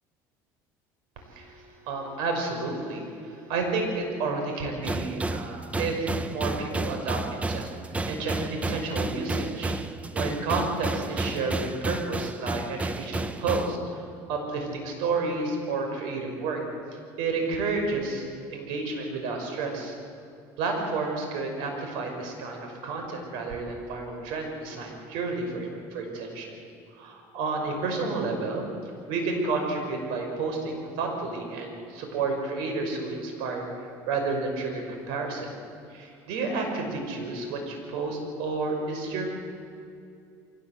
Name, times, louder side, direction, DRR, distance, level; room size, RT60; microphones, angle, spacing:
voice 1, 1.2-7.7 8.1-9.7 10.1-14.0 14.3-16.6 17.2-18.2 18.5-20.0 20.6-26.5 27.0-35.5 35.9-39.3, right 3 dB, 80° right, 3 dB, 5.9 m, -31 dB
sound 1, 4.8-13.8, right 2 dB, 15° right, 0.8 m, -31 dB
24.0 x 18.0 x 8.1 m, 2.5 s
cardioid pair, 120°, 8 cm